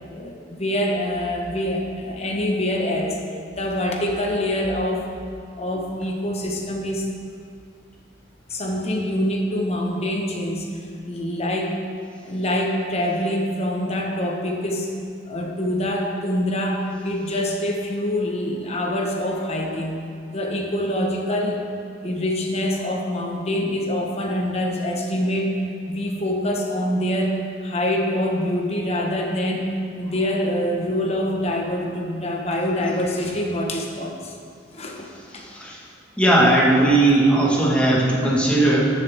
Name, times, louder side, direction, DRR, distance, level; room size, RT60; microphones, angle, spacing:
voice 1, 0.1-3.2 3.5-5.0 5.6-7.1 8.5-11.7 12.2-14.9 15.3-20.0 20.3-21.6 22.0-25.5 25.9-29.7 30.0-34.3 34.7-35.1 35.3-35.4, left 1 dB, 35° left, 0 dB, 1.2 m, -25 dB
voice 2, 35.4-35.8 36.2-38.9, right 1 dB, 5° left, -5 dB, 1.7 m, -18 dB
13.5 x 7.0 x 3.6 m, 2.3 s
head